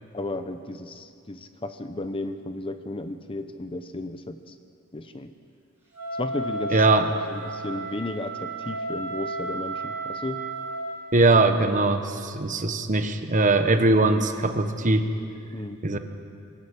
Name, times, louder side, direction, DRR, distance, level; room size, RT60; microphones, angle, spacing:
voice 1, 0.1-4.6 4.9-5.3 6.1-10.4 15.5-16.0, left 2 dB, 25° left, 9 dB, 0.7 m, -34 dB
Wind instrument woodwind instrument, 5.9-10.9, right 2 dB, 10° right, 6.4 m, -33 dB
voice 2, 6.7-7.1 11.1-15.1 15.8-16.0, right 2 dB, 35° right, 8 dB, 1.1 m, -21 dB
22.5 x 13.0 x 8.9 m, 2.4 s
head